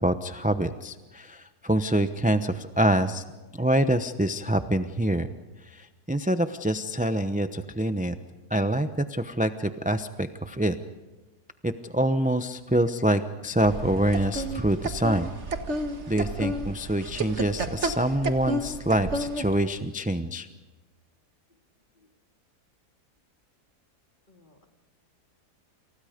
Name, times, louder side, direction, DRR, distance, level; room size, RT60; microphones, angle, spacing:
voice 1, 0.0-3.2 3.5-5.3 5.7-8.1 8.5-10.7 11.6-15.3 16.1-20.5, right 1 dB, 10° right, 9 dB, 0.6 m, -26 dB
sound 1, 13.6-19.6, right 1 dB, 45° right, 1.8 m, -32 dB
voice 2, 24.3-24.6, left 2 dB, 30° left, 3 dB, 3.2 m, -58 dB
29.5 x 28.5 x 5.2 m, 1.2 s
omnidirectional pair, 1.7 m